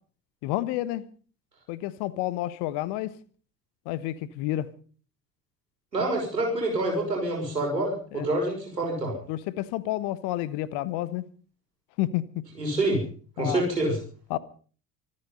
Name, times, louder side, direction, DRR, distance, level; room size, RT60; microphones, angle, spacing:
voice 1, 0.4-1.0 1.7-3.1 3.8-4.7 8.1-8.3 9.3-11.3 12.0-12.4 13.4-13.6 14.3-14.4, left 15 dB, 55° left, 1.2 m, -30 dB
voice 2, 5.9-9.2 12.6-13.0 13.4-14.0, right 2 dB, 85° right, 5.9 m, -27 dB
25.0 x 9.8 x 5.4 m
figure-of-eight pair, 55°, 48 cm